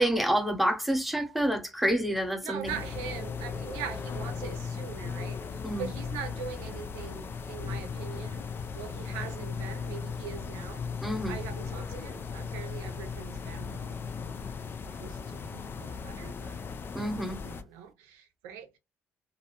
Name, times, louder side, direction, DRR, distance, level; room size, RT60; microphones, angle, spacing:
voice 1, 0.0-2.8 5.6-5.9 11.0-11.4 16.9-17.4, right 1 dB, ahead, 0.6 m, -28 dB
voice 2, 2.4-5.4 5.8-8.4 8.7-14.0 15.0-16.6 17.4-18.8, right 8 dB, 90° right, 0.5 m, -42 dB
sound 1, 2.6-17.6, left 5 dB, 40° left, 0.4 m, -37 dB
2.4 x 2.0 x 2.8 m
supercardioid pair, 65°, 6 cm